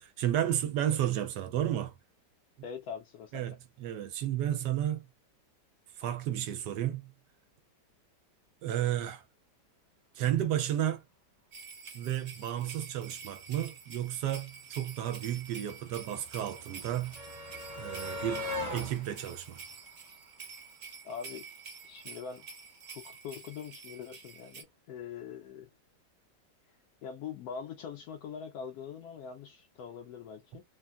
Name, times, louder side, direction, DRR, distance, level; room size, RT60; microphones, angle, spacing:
voice 1, 0.0-1.9 3.3-5.0 6.0-7.1 8.6-9.2 10.2-11.0 11.9-17.2 17.8-18.4 18.7-19.6, right 11 dB, 75° right, 1.2 m, -32 dB
voice 2, 2.6-3.6 21.0-21.4 21.8-22.4 22.9-25.7 27.0-30.6, left 7 dB, 70° left, 1.0 m, -43 dB
sound 1, 11.5-24.6, right 5 dB, 45° right, 1.1 m, -48 dB
sound 2, 14.6-20.8 22.0-22.1 22.4-22.5, left 2 dB, 20° right, 0.4 m, -42 dB
3.4 x 2.1 x 2.3 m
omnidirectional pair, 1.9 m